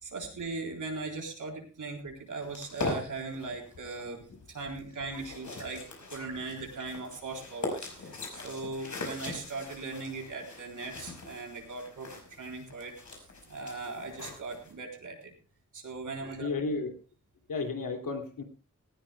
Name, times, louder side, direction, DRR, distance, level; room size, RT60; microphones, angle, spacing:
voice 1, 0.0-5.8 6.1-12.9 13.5-15.3 15.7-16.5, right 3 dB, 70° right, 1 dB, 3.9 m, -39 dB
sound 1, 2.5-14.7, left 3 dB, 65° left, 5.2 m, -41 dB
voice 2, 16.4-17.0 17.5-18.4, left 3 dB, 80° left, 5 dB, 2.6 m, -33 dB
18.5 x 16.0 x 2.3 m, 0.34 s
wide cardioid pair, 115°, 32 cm